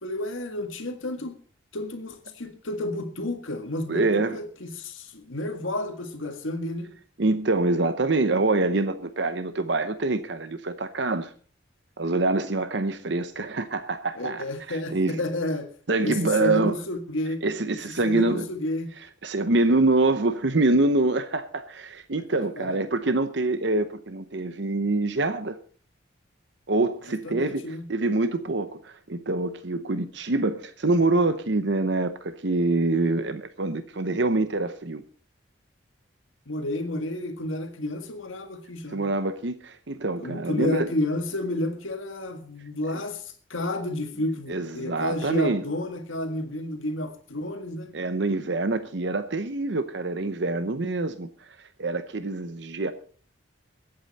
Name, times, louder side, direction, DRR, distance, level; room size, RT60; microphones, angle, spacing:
voice 1, 0.0-1.4 1.7-6.9 14.2-15.7 16.0-17.4 18.0-18.9 22.3-22.8 27.2-27.8 36.5-39.1 40.2-47.9, left 1 dB, 85° left, 1.8 m, -31 dB
voice 2, 3.9-4.4 7.2-11.3 12.0-15.2 15.9-16.8 17.4-18.4 19.2-25.6 26.7-35.0 38.9-40.9 44.5-45.6 47.9-52.9, right 2 dB, 65° right, 0.8 m, -25 dB
22.5 x 8.7 x 4.2 m
head